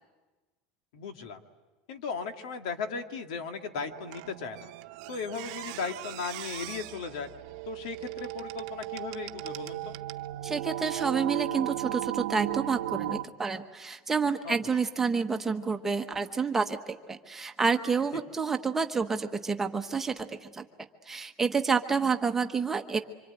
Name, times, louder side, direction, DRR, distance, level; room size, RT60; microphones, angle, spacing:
voice 1, 0.9-1.4 1.9-4.7 5.1-7.3 7.7-10.0 14.4-14.6, left 5 dB, 85° left, 6 dB, 2.2 m, -36 dB
sound 1, 3.7-13.3, right 15 dB, 90° right, 0.9 m, -37 dB
Squeak, 4.1-10.3 10.9-11.1, right 19 dB, 60° right, 0.9 m, -45 dB
voice 2, 10.4-20.6 21.1-23.0, right 5 dB, 10° right, 6 dB, 1.0 m, -29 dB
26.0 x 25.5 x 9.1 m, 1.2 s
supercardioid pair, 175°, 3 cm